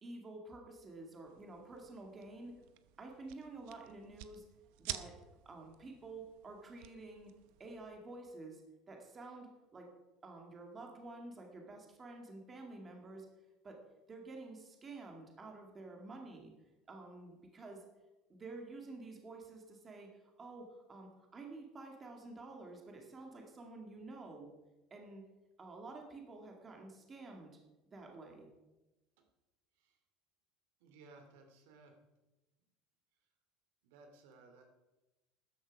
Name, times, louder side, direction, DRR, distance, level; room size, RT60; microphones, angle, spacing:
voice 1, 0.0-2.5 3.0-4.4 4.8-5.2 5.5-7.3 7.6-8.6 8.9-9.9 10.2-13.3 13.6-13.8 14.1-16.5 16.9-17.8 18.3-24.5 24.9-25.2 25.6-27.6 27.9-28.5, right 2 dB, 20° right, 2 dB, 1.9 m, -50 dB
sound 1, 1.3-8.0, right 14 dB, 70° right, 0.8 m, -51 dB
voice 2, 30.8-32.0 33.2-33.3 33.8-34.7, right 3 dB, 90° right, 4 dB, 2.6 m, -59 dB
13.5 x 10.5 x 5.1 m, 1.1 s
cardioid pair, 175°, 0 cm